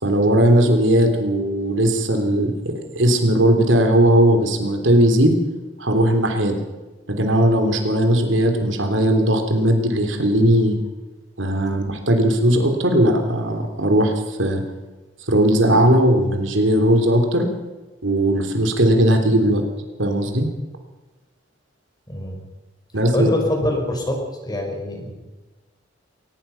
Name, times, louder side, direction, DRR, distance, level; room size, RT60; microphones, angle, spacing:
voice 1, 0.0-5.4 5.8-6.6 7.1-10.8 11.4-14.6 15.3-17.5 18.0-19.6 20.0-20.5 22.9-23.3, right 1 dB, 80° right, 5 dB, 3.3 m, -18 dB
voice 2, 22.1-22.4 23.1-24.2 24.4-25.1, left 1 dB, 20° left, 2 dB, 5.4 m, -24 dB
23.0 x 19.0 x 5.8 m, 1.2 s
head